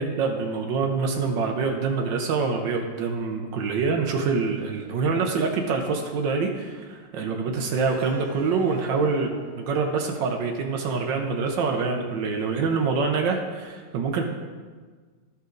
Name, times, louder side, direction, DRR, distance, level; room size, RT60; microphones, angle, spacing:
voice 1, 0.0-14.2, right 4 dB, 90° right, 3 dB, 1.6 m, -25 dB
Harp, 7.7-12.8, left 1 dB, 60° left, 1.9 m, -46 dB
13.5 x 5.6 x 3.9 m, 1.5 s
omnidirectional pair, 1.9 m